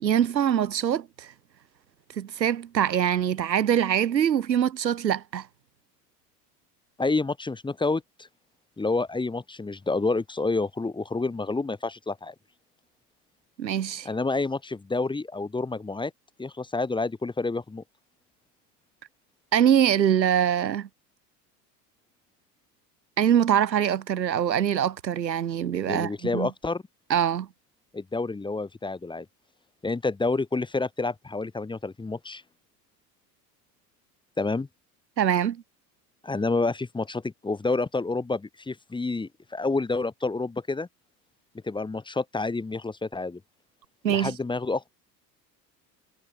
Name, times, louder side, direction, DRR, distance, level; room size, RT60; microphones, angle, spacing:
voice 1, 0.0-1.3 2.2-5.5 13.6-14.1 19.5-20.9 23.2-26.5 27.1-27.5 35.2-35.6 44.0-44.3, right 9 dB, 85° right, 0.7 m, -23 dB
voice 2, 7.0-8.0 8.8-12.3 14.0-16.1 16.4-17.8 25.8-26.8 27.9-29.2 29.8-32.4 34.4-34.7 36.2-40.9 41.6-43.4 44.1-44.9, left 3 dB, 10° left, 1.3 m, -28 dB
figure-of-eight pair, 70°, 49 cm